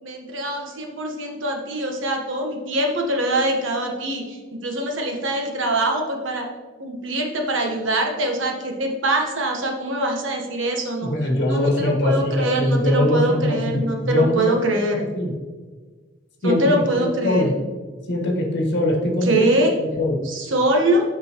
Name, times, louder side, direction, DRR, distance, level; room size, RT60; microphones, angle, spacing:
voice 1, 0.0-6.5 6.8-11.1 11.5-15.0 16.4-17.5 19.2-19.7 20.2-21.0, right 1 dB, 85° right, 2 dB, 1.2 m, -23 dB
voice 2, 11.1-14.5 15.1-15.3 16.4-17.5 18.1-19.5 19.8-20.2, left 1 dB, 60° left, 0 dB, 1.4 m, -22 dB
7.5 x 5.4 x 2.9 m, 1.4 s
head